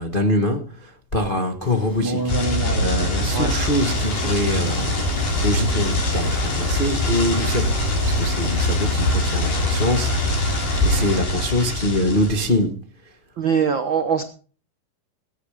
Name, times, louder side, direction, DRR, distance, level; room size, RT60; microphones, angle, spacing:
voice 1, 0.0-2.3 2.7-5.0 5.4-7.7 8.0-10.5 10.8-12.8, left 1 dB, 60° left, 0.5 m, -24 dB
Stream, 1.6-11.2, right 2 dB, 10° right, 1.3 m, -34 dB
sound 1, 2.3-12.6, left 1 dB, 80° left, 7.1 m, -23 dB
voice 2, 13.4-14.2, right 7 dB, 80° right, 1.0 m, -21 dB
20.5 x 9.7 x 5.1 m
omnidirectional pair, 4.0 m